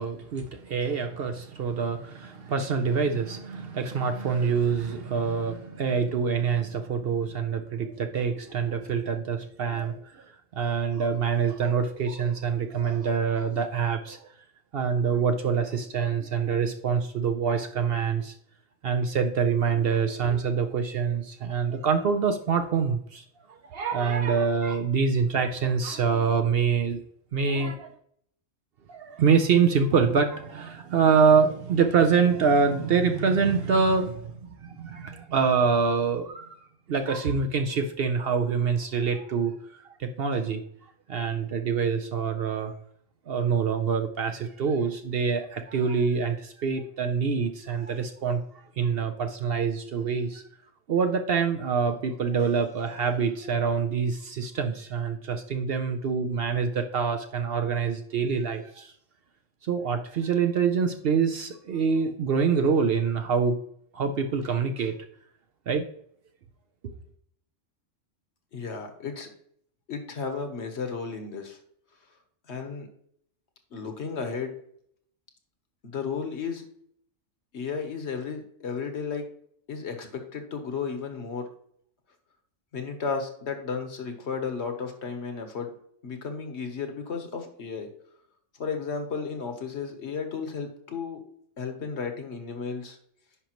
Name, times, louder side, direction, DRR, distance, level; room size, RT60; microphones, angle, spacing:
voice 1, 0.0-10.3 10.5-14.3 14.7-18.3 18.8-23.2 23.5-27.0 27.3-27.9 28.9-36.6 36.9-40.6 41.1-42.7 43.3-48.4 48.8-50.4 50.9-58.9 59.6-63.6 63.9-64.9 65.7-65.8 66.8-66.9, right 6 dB, 60° right, 6 dB, 0.7 m, -25 dB
voice 2, 68.5-69.3 69.9-71.6 72.5-72.9 73.7-74.5 75.8-76.6 77.5-79.2 79.7-81.4 82.7-85.7 86.0-87.9 88.6-91.2 91.6-93.0, left 5 dB, 60° left, 6 dB, 1.3 m, -33 dB
9.9 x 5.2 x 3.0 m, 0.67 s
omnidirectional pair, 1.3 m